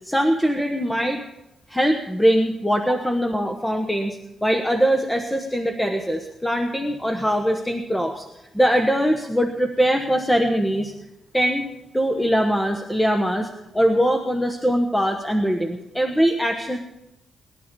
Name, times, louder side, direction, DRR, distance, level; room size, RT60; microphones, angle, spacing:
voice 1, 0.0-1.2 1.7-8.2 8.5-10.9 11.3-11.7 11.9-16.8, equal, 10° left, 4 dB, 1.1 m, -22 dB
19.0 x 12.0 x 5.3 m, 0.88 s
cardioid pair, 115°, 0 cm